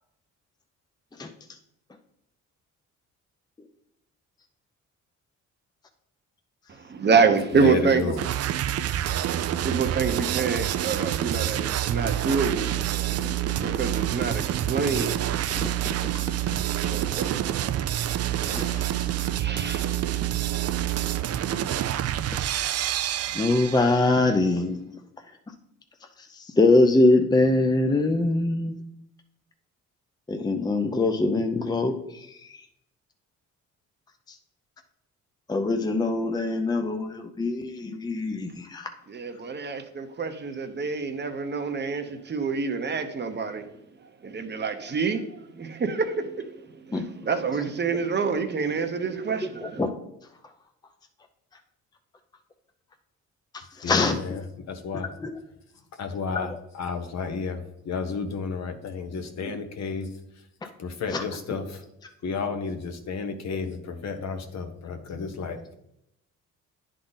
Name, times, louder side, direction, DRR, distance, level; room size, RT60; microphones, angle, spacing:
voice 1, 6.7-8.1 9.6-12.9 13.6-15.1 15.5-15.6 16.5-16.6 16.8-17.6 19.3-20.2 39.1-43.7 44.2-45.3 45.6-46.5 46.9-49.8, right 5 dB, 35° right, 0.9 m, -27 dB
voice 2, 7.5-8.2 53.8-55.1 56.0-60.1 60.8-61.8 62.2-65.7, left 5 dB, 60° left, 1.1 m, -32 dB
sound 1, 8.2-24.1, right 11 dB, 55° right, 0.4 m, -27 dB
voice 3, 18.4-19.1 23.3-24.8 26.3-28.7 30.3-32.4 35.5-38.9 46.9-47.0 49.6-49.9 53.5-54.2 55.2-55.3 56.5-56.6 59.4-59.5 61.1-61.2, left 2 dB, 15° left, 0.6 m, -23 dB
9.9 x 3.8 x 4.0 m
cardioid pair, 90°, 30 cm